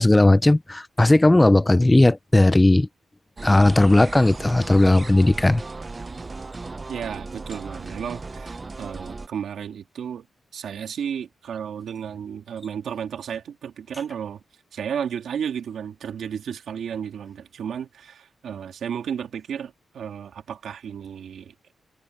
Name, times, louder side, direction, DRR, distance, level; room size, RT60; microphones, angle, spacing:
voice 1, 0.0-2.9 3.4-5.6, left 2 dB, 10° left, 0.6 m, -16 dB
sound 1, 3.4-9.3, right 3 dB, 25° right, 0.8 m, -36 dB
voice 2, 6.9-10.3 10.5-14.4 14.7-21.5, right 8 dB, 80° right, 2.3 m, -33 dB
wide cardioid pair, 160°, 0 cm